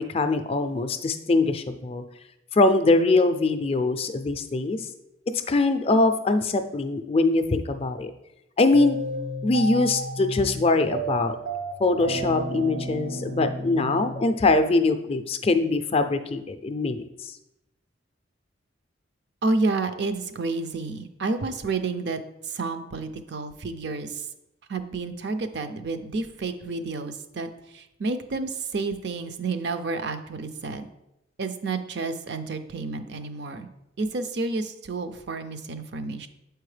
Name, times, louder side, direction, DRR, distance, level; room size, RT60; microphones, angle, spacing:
voice 1, 0.0-2.0 2.5-4.9 5.5-8.1 8.6-9.0 9.4-11.4 11.8-17.3, left 3 dB, 30° left, 8 dB, 0.4 m, -22 dB
sound 1, 8.7-14.9, right 1 dB, 85° right, 1.5 m, -32 dB
voice 2, 19.4-22.2 22.5-24.2 24.7-27.5 27.7-30.9 31.4-33.7 34.0-36.3, right 3 dB, 60° right, 9 dB, 0.5 m, -30 dB
7.6 x 4.6 x 3.2 m, 0.88 s
head